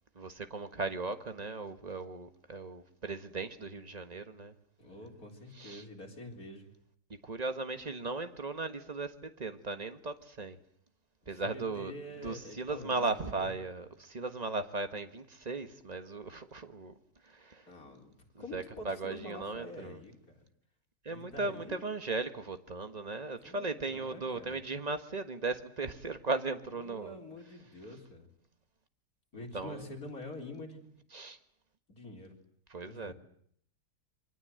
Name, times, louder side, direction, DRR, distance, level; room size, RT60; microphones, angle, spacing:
voice 1, 0.1-4.5 5.6-5.8 7.2-10.6 11.3-11.9 12.2-16.9 17.3-17.6 18.5-20.0 21.0-27.1 29.3-29.9 31.1-31.4 32.7-33.1, right 3 dB, 25° right, 1.5 m, -37 dB
voice 2, 4.8-6.7 11.2-13.5 17.7-18.1 18.4-20.5 21.1-21.8 23.4-24.6 26.8-28.3 29.3-30.9 31.9-32.4 32.8-33.1, left 1 dB, 55° left, 4.5 m, -47 dB
28.5 x 24.0 x 7.8 m
omnidirectional pair, 1.8 m